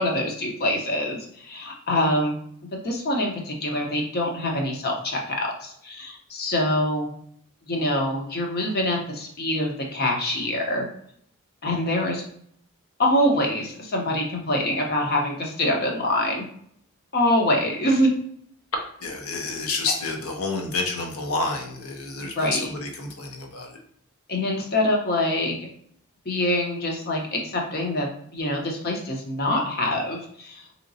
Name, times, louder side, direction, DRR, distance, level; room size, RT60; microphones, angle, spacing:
voice 1, 0.0-2.4 2.7-7.1 7.7-10.9 11.6-12.2 13.0-16.4 17.1-18.1 22.2-22.7 24.3-25.5 26.2-28.1 28.3-30.6, left 1 dB, 45° left, 1 dB, 0.8 m, -25 dB
voice 2, 18.7-23.8, left 3 dB, 75° left, 2 dB, 0.8 m, -29 dB
3.8 x 2.9 x 2.6 m, 0.65 s
head